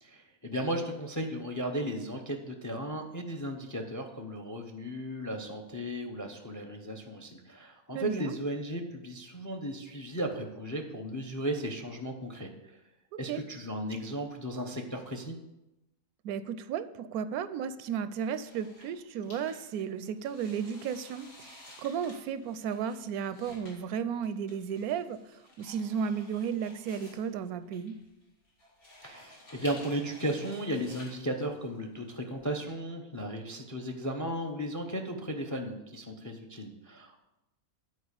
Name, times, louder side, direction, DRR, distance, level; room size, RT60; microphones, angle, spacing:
voice 1, 0.0-12.5 13.2-15.4 29.0-37.2, equal, 20° left, 4 dB, 0.5 m, -35 dB
voice 2, 7.9-8.4 13.3-13.4 16.2-28.0, right 7 dB, 85° right, 13 dB, 1.1 m, -34 dB
sound 1, 18.2-32.7, left 1 dB, 80° left, 2.8 m, -53 dB
9.6 x 4.7 x 6.7 m, 0.95 s
omnidirectional pair, 1.5 m